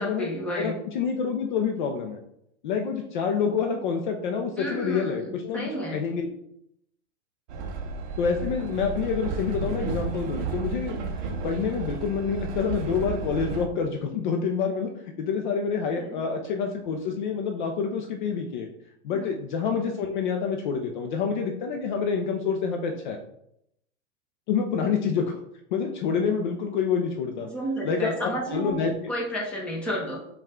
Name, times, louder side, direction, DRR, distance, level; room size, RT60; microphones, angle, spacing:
voice 1, 0.0-0.8 4.6-6.0 16.0-16.2 19.1-19.3 27.4-28.8 29.1-30.2, equal, 5° left, -4 dB, 0.8 m, -31 dB
voice 2, 0.6-2.2 2.6-6.3 8.2-11.1 11.4-18.7 19.0-23.2 24.5-25.4 25.7-27.5 27.8-28.9, left 6 dB, 45° left, 3 dB, 0.5 m, -27 dB
Train, 7.5-13.7, right 4 dB, 35° right, 0.6 m, -32 dB
5.3 x 2.4 x 3.6 m, 0.77 s
supercardioid pair, 155°, 35 cm